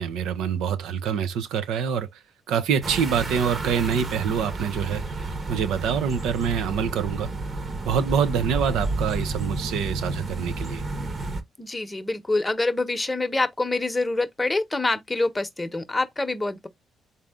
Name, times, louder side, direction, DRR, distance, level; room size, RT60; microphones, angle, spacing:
voice 1, 0.0-2.2 2.5-7.3 7.9-10.8, right 7 dB, 90° right, 0.6 m, -26 dB
sound 1, 2.8-11.4, right 2 dB, 40° right, 1.0 m, -31 dB
voice 2, 11.6-16.7, left 2 dB, 15° left, 0.9 m, -26 dB
3.7 x 2.7 x 3.5 m
cardioid pair, 90°, 0 cm